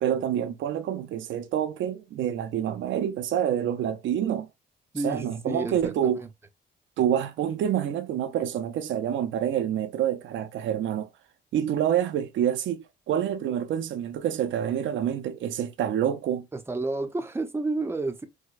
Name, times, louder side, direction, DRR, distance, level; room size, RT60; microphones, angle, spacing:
voice 1, 0.0-4.5 5.0-6.2 7.0-11.1 11.5-16.5, right 10 dB, 75° right, 0.5 m, -27 dB
voice 2, 4.9-6.3 16.5-18.3, right 2 dB, 10° right, 0.6 m, -30 dB
4.7 x 2.1 x 2.4 m
cardioid pair, 90°, 20 cm